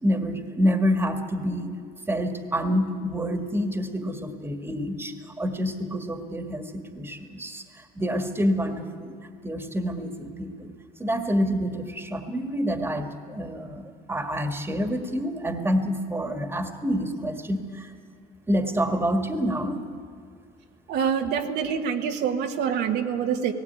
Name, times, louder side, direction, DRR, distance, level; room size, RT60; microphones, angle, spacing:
voice 1, 0.0-1.7 2.1-7.6 8.0-9.2 9.4-10.7 11.0-17.9 18.5-19.8, equal, 15° right, 7 dB, 1.7 m, -27 dB
voice 2, 20.9-23.5, right 7 dB, 80° right, 4 dB, 1.5 m, -26 dB
18.0 x 16.5 x 9.5 m, 2.3 s
cardioid pair, 110°, 17 cm